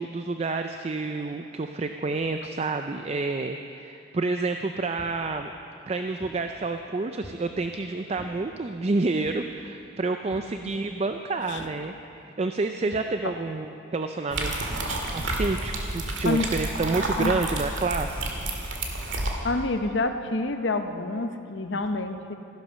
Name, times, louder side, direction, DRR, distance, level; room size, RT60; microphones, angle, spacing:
voice 1, 0.0-5.5 5.9-11.9 12.4-14.5 15.1-18.3, right 3 dB, 35° right, 6 dB, 0.4 m, -29 dB
sound 1, 5.0-5.2 5.8-6.5 7.2-7.5 8.1-8.4 9.2-9.6 10.3-10.6 11.6-11.8 12.9-13.1, equal, 40° left, 4.0 m, -46 dB
sound 2, 14.3-19.3, right 2 dB, 75° right, 1.9 m, -30 dB
voice 2, 19.4-22.3, left 2 dB, 65° left, 7 dB, 0.8 m, -28 dB
15.0 x 11.0 x 6.2 m, 2.7 s
head